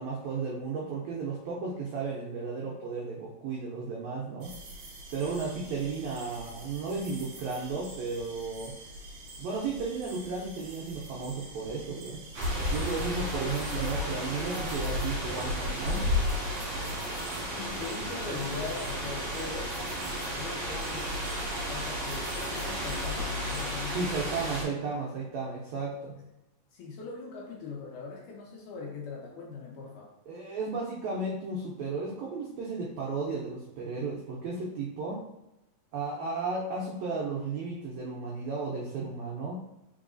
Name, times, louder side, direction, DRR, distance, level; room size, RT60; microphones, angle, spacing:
voice 1, 0.0-4.5 5.1-8.7 9.4-12.2 12.7-16.1 23.9-26.1 30.3-35.2 35.9-39.6, right 4 dB, 90° right, -3 dB, 1.5 m, -34 dB
sound 1, 4.4-23.8, right 1 dB, 70° right, 1.7 m, -46 dB
sound 2, 12.3-24.6, left 1 dB, 45° right, 1.8 m, -32 dB
voice 2, 17.6-19.7 20.4-24.1 26.2-26.3 26.7-30.1, left 4 dB, 75° left, -2 dB, 2.1 m, -40 dB
4.6 x 4.0 x 2.5 m, 0.90 s
omnidirectional pair, 4.1 m